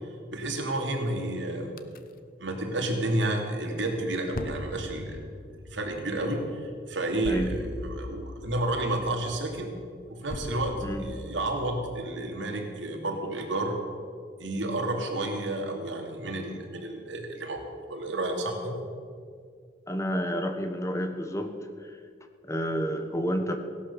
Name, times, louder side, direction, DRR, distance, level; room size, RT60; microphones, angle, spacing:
voice 1, 0.3-1.7 2.4-5.2 5.7-9.7 10.1-13.8 14.4-17.6 17.9-18.8, right 1 dB, 85° right, 2 dB, 2.6 m, -31 dB
sound 1, 1.8-2.0 4.3-12.0, left 2 dB, 50° left, 0.8 m, -40 dB
voice 2, 19.9-21.5 21.9-22.0 22.4-23.6, equal, 15° left, 7 dB, 1.2 m, -29 dB
16.5 x 11.5 x 6.9 m, 2.1 s
head